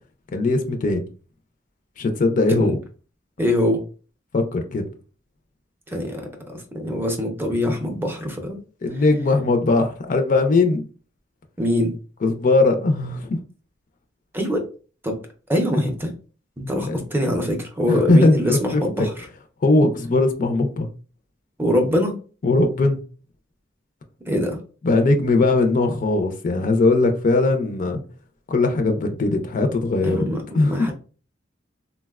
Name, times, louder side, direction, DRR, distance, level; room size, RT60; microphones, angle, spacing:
voice 1, 0.3-1.0 2.0-2.8 4.3-4.8 8.8-10.8 12.2-13.4 16.9-17.0 17.9-19.1 19.6-20.9 22.4-23.0 24.8-28.0 28.5-30.3 30.5-30.9, left 2 dB, 45° left, 0.4 m, -19 dB
voice 2, 3.4-3.8 5.9-8.6 11.6-11.9 14.3-14.6 15.0-15.1 15.5-16.1 16.6-19.1 21.6-22.2 24.3-24.6 30.0-30.9, left 1 dB, 10° right, 0.5 m, -23 dB
3.8 x 2.1 x 2.3 m
head